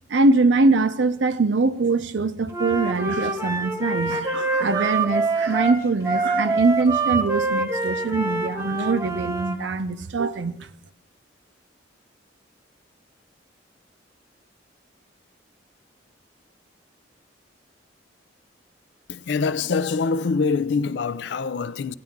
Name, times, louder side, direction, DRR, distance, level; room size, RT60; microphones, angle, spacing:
voice 1, 0.1-10.6, right 3 dB, 75° right, 0.6 m, -22 dB
Wind instrument woodwind instrument, 2.5-9.6, right 3 dB, 15° right, 1.0 m, -25 dB
voice 2, 19.1-21.9, left 4 dB, 65° left, 0.4 m, -24 dB
14.5 x 10.5 x 3.6 m
head